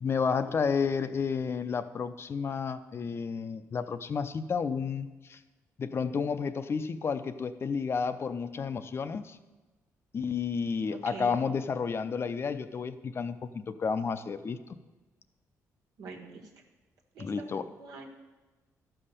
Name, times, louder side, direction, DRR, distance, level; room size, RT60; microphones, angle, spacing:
voice 1, 0.0-5.4 5.8-9.4 10.1-14.6 17.2-17.7, left 5 dB, 40° left, 11 dB, 0.5 m, -31 dB
voice 2, 16.0-16.5 17.1-17.5 17.8-18.1, right 4 dB, 80° right, 2 dB, 1.6 m, -43 dB
12.0 x 5.6 x 6.7 m, 1.2 s
cardioid pair, 100°, 6 cm